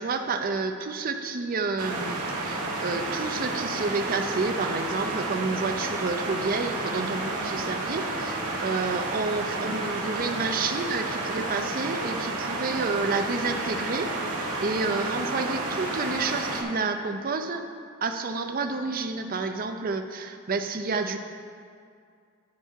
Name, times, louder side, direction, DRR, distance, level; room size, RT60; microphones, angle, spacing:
voice 1, 0.0-17.6 18.0-21.2, right 4 dB, 40° right, 6 dB, 0.5 m, -30 dB
sound 1, 1.8-16.6, right 2 dB, 80° right, 1.6 m, -31 dB
13.0 x 4.5 x 4.6 m, 2.3 s
head